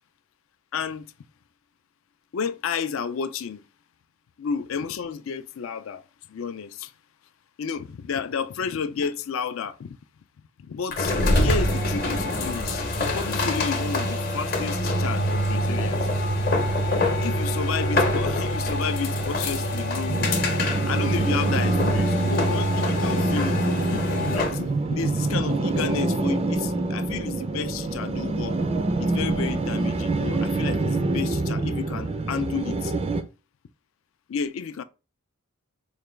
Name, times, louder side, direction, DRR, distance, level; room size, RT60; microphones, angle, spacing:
voice 1, 0.7-1.1 2.3-3.6 4.4-6.0 6.3-6.9 7.6-10.0 10.7-11.1 11.4-12.9 13.1-16.1 17.2-20.3 20.9-28.6 29.0-32.9 34.3-34.8, left 6 dB, 65° left, 0.4 m, -31 dB
sound 1, 10.9-24.6, left 1 dB, 45° left, 0.8 m, -25 dB
sound 2, 20.1-33.2, right 2 dB, 25° right, 0.3 m, -26 dB
4.7 x 2.2 x 3.2 m
head